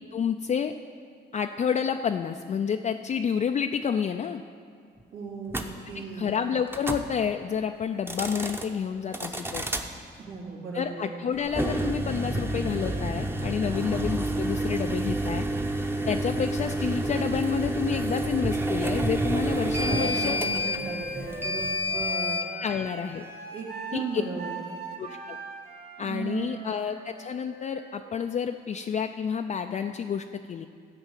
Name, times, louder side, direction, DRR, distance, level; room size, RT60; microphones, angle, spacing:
voice 1, 0.1-0.7 1.3-4.4 6.1-9.6 10.7-15.4 16.1-20.4 22.6-23.2 23.9-24.2 25.0-25.4 26.0-30.7, left 7 dB, 35° left, 6 dB, 0.4 m, -29 dB
voice 2, 5.1-5.6 5.9-6.4 10.2-11.3 13.6-13.9 19.8-22.4 23.5-24.6 26.0-26.7, right 4 dB, 85° right, -5 dB, 3.3 m, -36 dB
sound 1, 5.5-5.7 6.7-7.1 8.0-8.7 9.1-9.9 11.5-22.5, right 1 dB, 10° right, 0.8 m, -29 dB
Wind instrument woodwind instrument, 19.3-29.1, right 2 dB, 50° right, 2.9 m, -41 dB
13.0 x 5.3 x 8.1 m, 2.3 s
cardioid pair, 90°, 20 cm